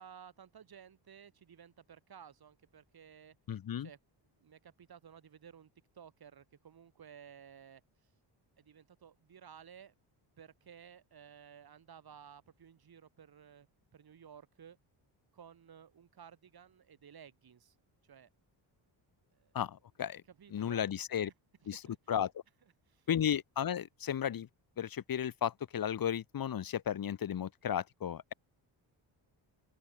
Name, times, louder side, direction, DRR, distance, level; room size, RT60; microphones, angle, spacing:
voice 1, 0.0-3.4 3.8-4.0 4.4-5.7 5.9-8.1 8.6-9.9 10.4-13.7 13.9-14.8 15.3-17.7 18.0-18.3 19.3-19.5 20.3-20.8 21.2-21.3 21.7-22.0 22.9-23.1, right 8 dB, 50° right, 4.9 m, -55 dB
voice 2, 3.5-3.9 19.5-20.2 20.5-21.3 21.7-21.8 22.1-22.3 23.1-24.5 24.8-28.3, left 9 dB, 45° left, 1.3 m, -34 dB
open air
cardioid pair, 120°, 47 cm